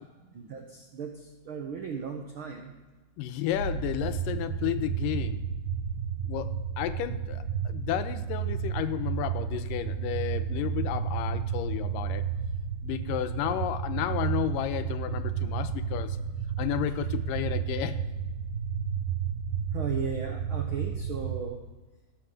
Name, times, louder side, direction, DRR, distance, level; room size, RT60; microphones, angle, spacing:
voice 1, 0.3-2.7 19.7-21.6, right 6 dB, 90° right, 3 dB, 1.1 m, -36 dB
voice 2, 3.2-5.4 6.2-12.2 12.8-16.2 16.6-18.0, left 12 dB, 90° left, 10 dB, 2.3 m, -32 dB
sound 1, 3.5-21.4, right 7 dB, 60° right, 2.6 m, -32 dB
16.0 x 5.5 x 6.6 m, 1.2 s
omnidirectional pair, 3.9 m